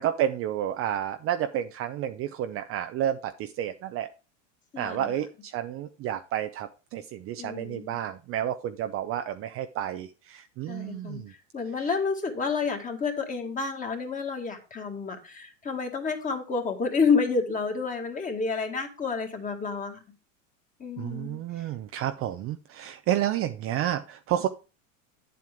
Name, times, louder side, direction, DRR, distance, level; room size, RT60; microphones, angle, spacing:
voice 1, 0.0-4.1 4.8-11.3 21.0-24.5, right 11 dB, 35° right, 8 dB, 0.6 m, -30 dB
voice 2, 4.7-5.1 7.4-8.0 10.7-11.2 11.5-20.0 20.8-21.4, left 5 dB, 20° left, 3 dB, 2.0 m, -29 dB
9.3 x 7.7 x 3.6 m, 0.32 s
supercardioid pair, 125°, 40 cm